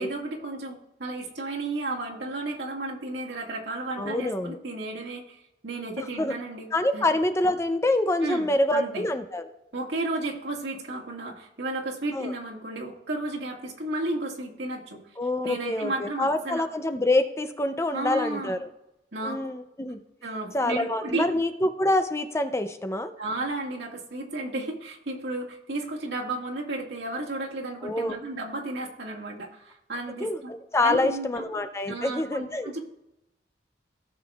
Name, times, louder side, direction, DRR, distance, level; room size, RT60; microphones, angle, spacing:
voice 1, 0.0-7.1 8.2-9.1 9.7-15.0 15.4-16.7 17.9-18.6 19.1-19.5 20.2-21.3 23.2-30.5 30.8-31.4 31.9-32.9, right 2 dB, 80° right, -1 dB, 1.9 m, -33 dB
voice 2, 4.0-4.6 6.0-6.3 6.7-9.4 12.1-12.3 15.2-18.7 19.2-20.0 20.5-23.1 27.8-28.2 30.2-32.7, left 2 dB, 15° left, 8 dB, 0.5 m, -26 dB
17.0 x 6.8 x 2.4 m, 0.87 s
head